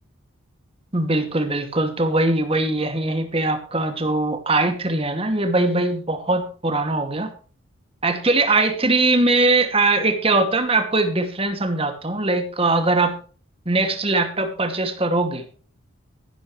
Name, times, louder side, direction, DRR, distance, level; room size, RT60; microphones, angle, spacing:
voice 1, 0.9-7.3 8.0-13.1 13.7-15.5, right 2 dB, 25° right, 6 dB, 2.4 m, -21 dB
15.5 x 12.0 x 3.3 m, 0.39 s
head